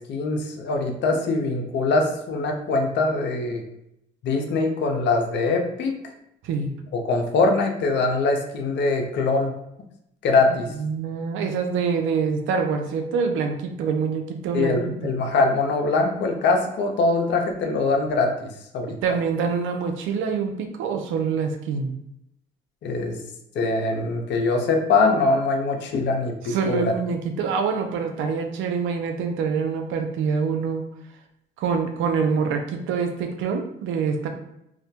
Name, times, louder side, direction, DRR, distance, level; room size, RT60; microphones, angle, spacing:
voice 1, 0.0-3.6 4.2-5.9 7.0-9.5 10.2-10.7 14.5-19.0 22.8-23.2 23.5-26.8, left 3 dB, 60° left, 3 dB, 0.5 m, -23 dB
voice 2, 10.7-15.1 18.9-21.9 26.5-30.9 31.6-34.3, right 5 dB, 75° right, 5 dB, 0.5 m, -25 dB
2.2 x 2.1 x 2.7 m, 0.81 s
supercardioid pair, 80°, 21 cm